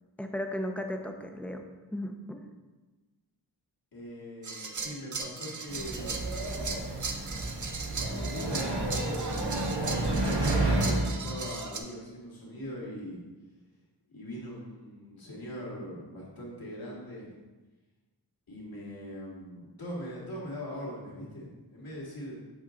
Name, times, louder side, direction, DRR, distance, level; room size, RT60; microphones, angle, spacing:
voice 1, 0.2-1.6 1.9-2.5, left 1 dB, 5° left, 4 dB, 0.7 m, -35 dB
voice 2, 3.9-6.4 8.1-13.2 14.1-17.3 18.5-22.4, equal, 60° left, -4 dB, 2.2 m, -41 dB
sound 1, 4.4-11.8, right 4 dB, 45° right, 0.7 m, -38 dB
sound 2, 5.7-11.0, right 2 dB, 70° right, 1.7 m, -30 dB
7.2 x 4.7 x 3.8 m, 1.2 s
wide cardioid pair, 75°, 41 cm